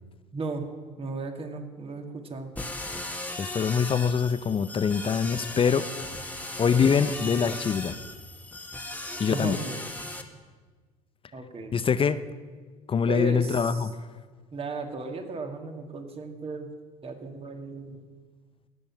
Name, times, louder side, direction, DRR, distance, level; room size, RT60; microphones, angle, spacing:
voice 1, 0.3-0.7 1.0-2.5 9.3-9.8 11.3-11.7 13.1-13.9 14.5-16.7 17.0-18.0, right 3 dB, 30° right, 5 dB, 1.9 m, -35 dB
sound 1, 2.6-10.2, left 2 dB, 10° left, 1.3 m, -37 dB
voice 2, 3.4-5.9 6.6-8.0 9.2-9.6 11.7-12.2 12.9-13.9, left 6 dB, 30° left, 14 dB, 0.6 m, -24 dB
17.0 x 7.0 x 5.9 m, 1.5 s
hypercardioid pair, 65°, 18 cm